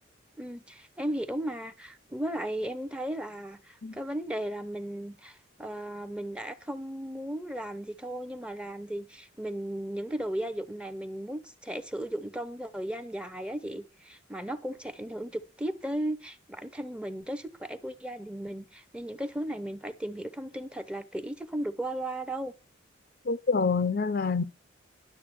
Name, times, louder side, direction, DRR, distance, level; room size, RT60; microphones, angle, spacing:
voice 1, 0.4-22.5, right 1 dB, 5° right, 0.8 m, -36 dB
voice 2, 23.2-24.4, left 4 dB, 50° left, 0.6 m, -26 dB
11.5 x 6.8 x 5.9 m
head